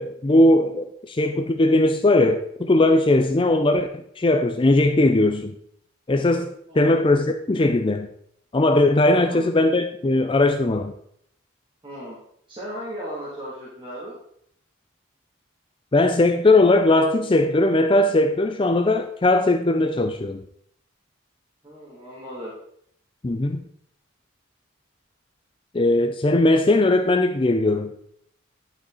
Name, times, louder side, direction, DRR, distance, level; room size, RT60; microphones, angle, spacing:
voice 1, 0.0-5.5 6.1-6.5 6.7-8.1 8.5-10.9 15.9-20.4 23.2-23.6 25.7-27.9, left 2 dB, 25° left, 7 dB, 0.5 m, -19 dB
voice 2, 11.8-12.2 12.5-14.2 21.6-22.5, equal, 25° right, -8 dB, 2.6 m, -36 dB
11.0 x 5.7 x 4.0 m, 0.70 s
head